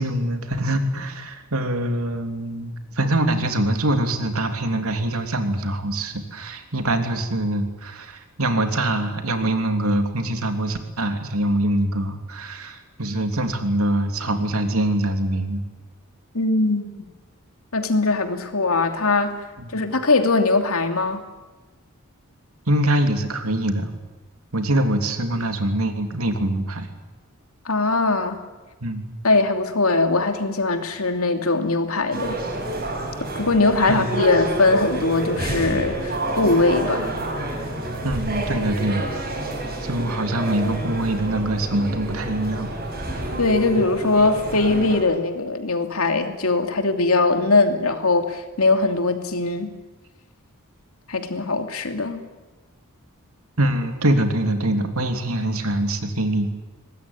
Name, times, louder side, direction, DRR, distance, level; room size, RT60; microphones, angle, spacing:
voice 1, 0.0-15.6 19.6-19.7 22.7-23.9 24.5-26.9 28.8-29.1 33.9-34.1 38.0-39.1 39.8-42.7 43.8-43.9 53.6-56.5, right 1 dB, 80° right, 6 dB, 3.1 m, -24 dB
voice 2, 16.3-16.9 17.7-19.3 19.7-21.2 27.6-28.4 29.2-32.4 33.3-37.2 43.4-49.7 51.1-52.2, left 3 dB, 85° left, 6 dB, 2.8 m, -21 dB
sound 1, 32.1-45.0, right 1 dB, 45° right, 7.1 m, -29 dB
23.0 x 20.0 x 9.8 m, 1.2 s
head